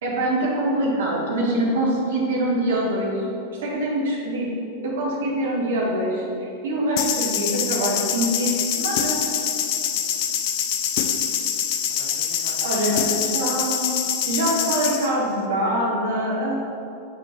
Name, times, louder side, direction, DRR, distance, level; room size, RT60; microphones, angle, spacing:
voice 1, 0.0-3.3 3.6-4.5 4.8-9.2 12.6-13.9 14.3-16.5, right 1 dB, 60° right, -4 dB, 1.4 m, -24 dB
sound 1, 7.0-15.1, left 8 dB, 45° left, 0.4 m, -25 dB
voice 2, 9.7-10.4 10.9-11.6 11.9-14.0, right 1 dB, 30° right, -5 dB, 1.1 m, -45 dB
8.4 x 4.4 x 3.0 m, 2.7 s
figure-of-eight pair, 90°, 0 cm